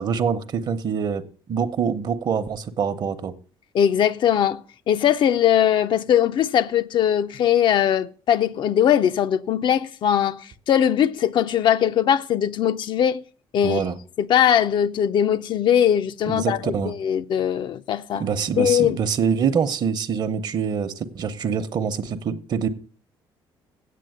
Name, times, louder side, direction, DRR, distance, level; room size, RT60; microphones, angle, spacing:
voice 1, 0.0-3.3 13.6-14.0 16.3-16.9 18.1-22.7, right 6 dB, 50° right, 0.9 m, -25 dB
voice 2, 3.7-13.2 13.5-13.8 14.2-18.2 18.6-19.0, left 9 dB, 55° left, 0.5 m, -20 dB
8.4 x 7.5 x 7.8 m
cardioid pair, 135°, 9 cm